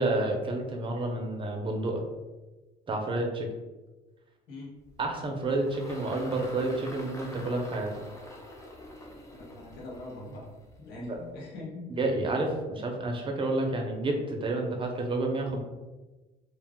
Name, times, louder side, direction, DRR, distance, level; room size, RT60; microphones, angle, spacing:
voice 1, 0.0-2.0 2.9-3.5 5.0-7.9 10.9-11.2 12.0-15.6, right 2 dB, 30° right, 2 dB, 0.6 m, -30 dB
Engine, 4.8-11.4, left 1 dB, 20° left, 0.6 m, -46 dB
voice 2, 9.3-10.5 10.8-11.9, left 2 dB, 80° left, -2 dB, 0.9 m, -42 dB
2.4 x 2.3 x 3.4 m, 1.2 s
cardioid pair, 110°, 17 cm